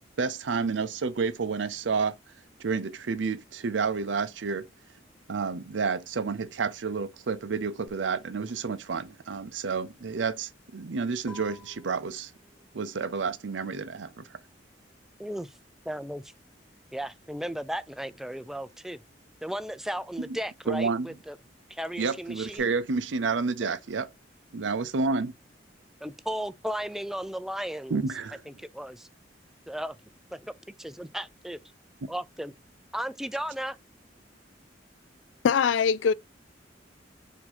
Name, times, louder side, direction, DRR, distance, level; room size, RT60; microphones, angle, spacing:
voice 1, 0.2-2.1 2.6-4.7 5.3-12.3 12.7-14.2 20.3-20.4 20.7-21.1 22.0-24.1 24.5-25.3 27.9-28.4, right 4 dB, 80° right, 0.6 m, -30 dB
sound 1, 7.9-18.1 18.4-22.6, left 1 dB, 25° left, 1.6 m, -55 dB
voice 2, 15.2-15.5 15.9-16.3 16.9-19.0 19.4-21.4 21.7-22.7 23.6-23.8 26.0-28.1 28.5-29.1 29.7-30.0 30.3-30.5 30.8-31.6 32.1-32.5 32.9-33.8, equal, ahead, 0.3 m, -35 dB
voice 3, 35.4-36.1, left 6 dB, 85° left, 0.4 m, -22 dB
4.5 x 2.7 x 4.2 m
head